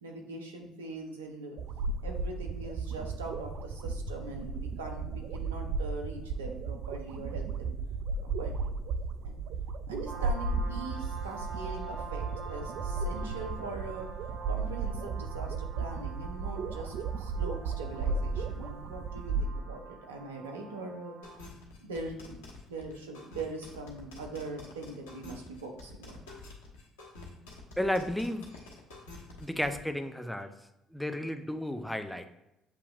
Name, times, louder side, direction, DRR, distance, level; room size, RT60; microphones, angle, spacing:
voice 1, 0.0-1.6 2.0-7.7 8.2-8.5 9.2-9.4 9.9-12.2 12.5-14.1 14.5-21.2 21.8-22.4 22.7-26.2, right 2 dB, 90° right, 2 dB, 0.7 m, -42 dB
sound 1, 1.6-19.5, right 4 dB, 60° right, 0.3 m, -34 dB
sound 2, 10.0-21.4, right 3 dB, 45° right, 1.5 m, -46 dB
sound 3, 21.2-29.8, left 2 dB, 80° left, 1.0 m, -48 dB
voice 2, 27.8-28.5 29.4-30.5 30.9-32.3, left 1 dB, 5° left, 8 dB, 0.5 m, -32 dB
7.1 x 2.9 x 2.5 m, 0.91 s
hypercardioid pair, 55°, 0 cm